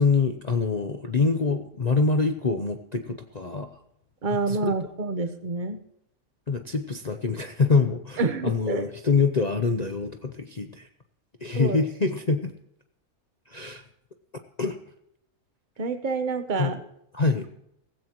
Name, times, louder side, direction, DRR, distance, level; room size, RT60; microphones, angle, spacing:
voice 1, 0.0-3.7 4.3-4.7 6.5-10.9 11.4-12.5 13.5-13.8 14.6-14.8 16.6-16.7 17.1-17.5, left 4 dB, 40° left, 6 dB, 0.7 m, -25 dB
voice 2, 4.2-5.8 8.2-8.9 11.5-11.8 15.8-16.8, right 3 dB, 35° right, 9 dB, 1.1 m, -28 dB
17.0 x 15.5 x 3.1 m, 0.75 s
omnidirectional pair, 1.6 m